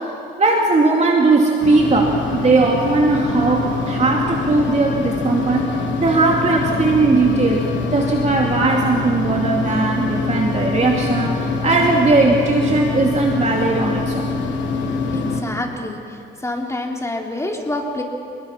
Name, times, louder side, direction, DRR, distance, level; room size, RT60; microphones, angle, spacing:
voice 1, 0.0-14.3, right 3 dB, 35° right, 0 dB, 2.6 m, -18 dB
sound 1, 1.6-15.4, left 4 dB, 70° left, 4.0 m, -24 dB
voice 2, 15.1-16.0 16.4-18.0, left 2 dB, 15° left, 1 dB, 3.4 m, -26 dB
28.5 x 20.5 x 5.9 m, 2.7 s
cardioid pair, 90°, 20 cm